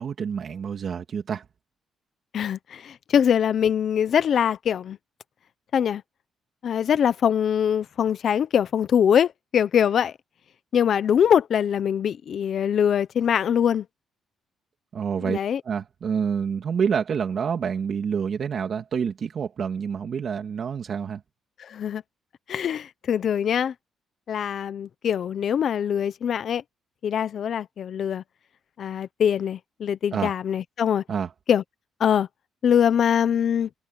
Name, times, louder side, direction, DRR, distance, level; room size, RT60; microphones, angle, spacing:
voice 1, 0.0-1.4 14.9-15.4 15.7-21.2 30.1-30.3 31.1-31.3, right 7 dB, 50° right, 2.1 m, -27 dB
voice 2, 2.3-5.0 5.7-6.0 6.6-10.1 10.7-13.9 15.2-15.6 21.6-22.0 22.5-23.7 24.3-26.6 27.0-28.2 28.8-31.0 31.5-31.6 32.0-32.3 32.6-33.7, left 8 dB, 55° left, 1.0 m, -23 dB
cardioid pair, 110°, 0 cm